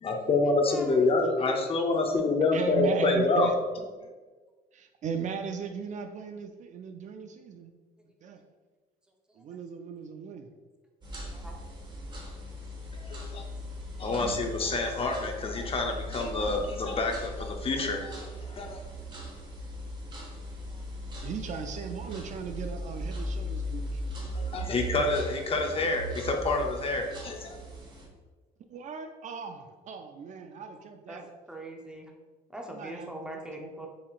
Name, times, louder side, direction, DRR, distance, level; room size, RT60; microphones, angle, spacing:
voice 1, 0.0-3.5 13.0-13.4 14.0-18.8 24.3-27.6, left 3 dB, 35° left, 3 dB, 0.6 m, -27 dB
voice 2, 2.5-3.5 4.7-7.7 8.2-8.4 9.4-10.5 21.2-24.3 28.7-31.3 32.7-33.4, right 6 dB, 45° right, 6 dB, 0.4 m, -37 dB
sound 1, 11.0-28.1, equal, 25° right, 1.0 m, -38 dB
voice 3, 31.5-32.1 32.5-33.9, right 1 dB, 5° right, 0 dB, 0.7 m, -40 dB
7.0 x 2.8 x 2.4 m, 1.3 s
cardioid pair, 110°, 17 cm